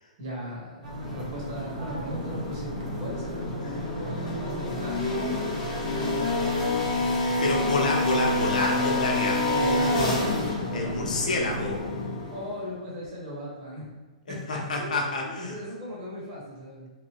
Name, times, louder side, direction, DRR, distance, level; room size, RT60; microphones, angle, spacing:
voice 1, 0.2-6.7 9.4-11.1 12.3-13.9 14.3-16.9, equal, 35° right, -6 dB, 1.4 m, -37 dB
sound 1, 0.8-11.9, right 1 dB, 75° right, 0.9 m, -38 dB
sound 2, 0.9-12.7, left 2 dB, 15° left, 0.8 m, -28 dB
voice 2, 7.4-9.4 10.7-11.8 14.3-15.5, left 2 dB, 80° left, 0 dB, 0.8 m, -28 dB
3.4 x 2.4 x 3.0 m, 1.3 s
hypercardioid pair, 165°, 4 cm